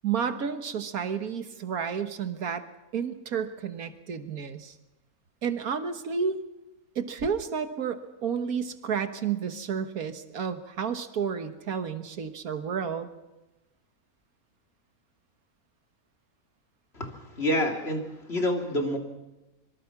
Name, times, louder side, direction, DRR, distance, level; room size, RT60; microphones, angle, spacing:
voice 1, 0.0-2.7 2.9-4.7 5.4-6.4 7.0-13.1, right 7 dB, 80° right, 9 dB, 1.8 m, -31 dB
voice 2, 16.9-19.0, left 1 dB, 45° left, 2 dB, 3.2 m, -28 dB
25.5 x 23.5 x 6.0 m, 1.0 s
omnidirectional pair, 1.5 m